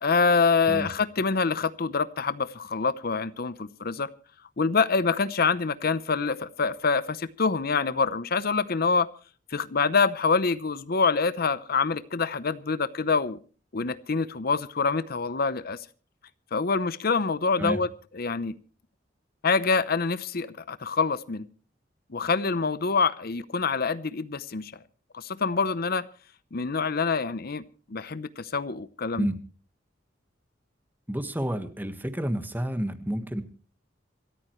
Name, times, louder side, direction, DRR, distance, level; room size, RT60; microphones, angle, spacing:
voice 1, 0.0-4.1 4.6-9.1 9.5-13.4 13.7-15.9 16.5-17.9 18.1-18.5 19.4-21.5 22.1-24.7 25.1-26.1 26.5-27.6 27.9-29.3, left 4 dB, 55° left, 15 dB, 0.8 m, -26 dB
voice 2, 31.1-33.4, right 1 dB, 10° right, 9 dB, 1.5 m, -29 dB
27.0 x 14.0 x 3.2 m, 0.38 s
head